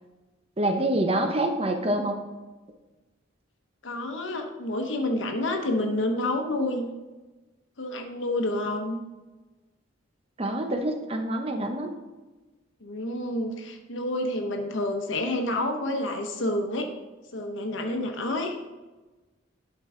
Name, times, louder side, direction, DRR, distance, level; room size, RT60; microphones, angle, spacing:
voice 1, 0.6-2.2 10.4-11.9, right 1 dB, 30° right, 5 dB, 0.8 m, -26 dB
voice 2, 3.8-6.9 7.8-9.0 12.8-16.9 17.3-18.6, left 1 dB, 70° left, 4 dB, 0.9 m, -29 dB
11.5 x 4.6 x 3.7 m, 1.2 s
head